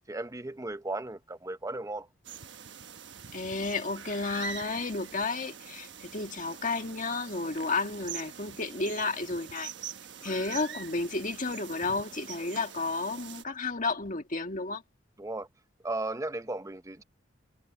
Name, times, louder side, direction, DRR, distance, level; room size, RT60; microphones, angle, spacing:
voice 1, 0.1-2.1 15.2-15.5 15.8-17.0, right 2 dB, 15° right, 0.8 m, -35 dB
sound 1, 2.2-13.4, right 8 dB, 65° right, 1.2 m, -44 dB
voice 2, 3.3-9.7 10.2-14.8, left 3 dB, 45° left, 1.8 m, -32 dB
head